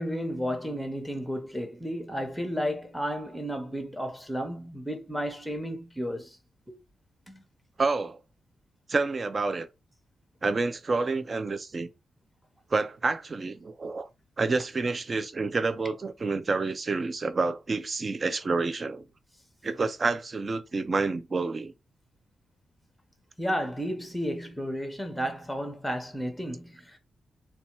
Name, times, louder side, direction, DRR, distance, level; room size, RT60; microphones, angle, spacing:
voice 1, 0.0-6.3 6.7-6.8 7.3-7.4 23.4-27.0, equal, ahead, 0.8 m, -32 dB
voice 2, 7.8-8.2 8.9-9.7 10.4-11.9 12.7-14.1 14.4-19.1 19.6-21.7, right 3 dB, 30° right, 0.4 m, -28 dB
4.1 x 2.3 x 4.4 m
wide cardioid pair, 165°, 0 cm